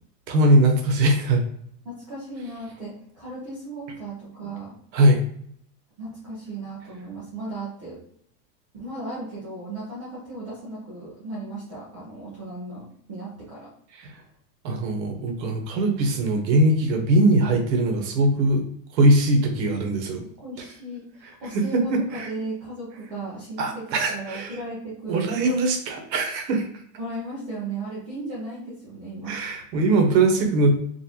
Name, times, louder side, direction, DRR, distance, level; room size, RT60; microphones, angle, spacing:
voice 1, 0.3-1.4 4.9-5.2 14.0-14.1 14.6-18.6 18.9-20.2 21.5-22.3 23.6-24.6 25.1-26.7 29.3-30.7, right 1 dB, 85° right, 4 dB, 1.1 m, -21 dB
voice 2, 1.8-4.7 6.0-8.0 8.7-13.7 20.2-25.5 27.0-29.4, right 2 dB, 20° right, -8 dB, 0.3 m, -36 dB
3.9 x 2.5 x 2.8 m, 0.66 s
supercardioid pair, 165°, 50 cm